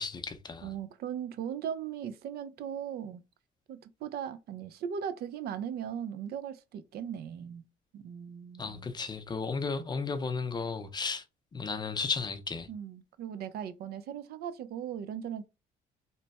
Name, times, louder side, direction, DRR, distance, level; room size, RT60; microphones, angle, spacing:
voice 1, 0.0-0.7 8.6-11.2 11.5-12.7, left 4 dB, 25° left, 0.6 m, -34 dB
voice 2, 0.6-3.2 3.7-7.6 7.9-8.9 12.7-15.5, right 8 dB, 65° right, 0.5 m, -38 dB
3.2 x 2.1 x 4.0 m
cardioid pair, 110°, 17 cm